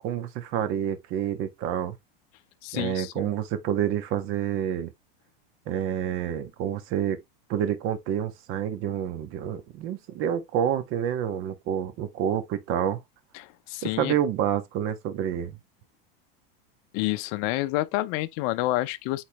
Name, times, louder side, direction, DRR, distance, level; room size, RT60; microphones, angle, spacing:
voice 1, 0.0-1.9 2.7-4.9 5.7-7.2 7.5-13.0 13.8-15.6, right 9 dB, 45° right, 1.5 m, -28 dB
voice 2, 2.6-3.3 13.3-14.2 16.9-19.2, left 18 dB, 50° left, 0.7 m, -29 dB
8.8 x 4.0 x 3.1 m
supercardioid pair, 135°, 30 cm